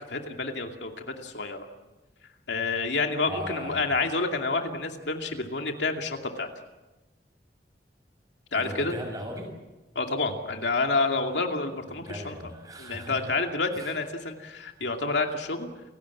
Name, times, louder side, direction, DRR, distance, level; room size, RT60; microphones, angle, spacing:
voice 1, 0.1-1.7 2.5-6.5 8.5-8.9 9.9-12.3 12.8-15.7, left 3 dB, 85° left, 3 dB, 2.5 m, -29 dB
voice 2, 3.3-3.9 8.5-9.5 11.9-13.3 13.8-14.0, equal, 20° right, 2 dB, 6.6 m, -38 dB
29.5 x 17.0 x 8.5 m, 1.1 s
head